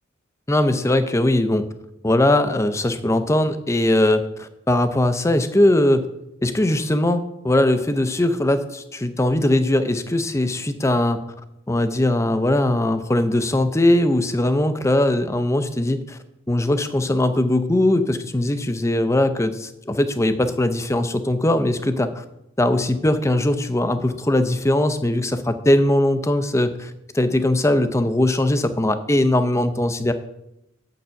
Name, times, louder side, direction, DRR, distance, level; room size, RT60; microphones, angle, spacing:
voice 1, 0.5-1.7 2.0-6.1 6.4-11.2 11.7-16.2 16.5-22.2 22.6-30.1, left 1 dB, 15° left, 10 dB, 0.5 m, -20 dB
7.6 x 6.7 x 5.7 m, 0.85 s
head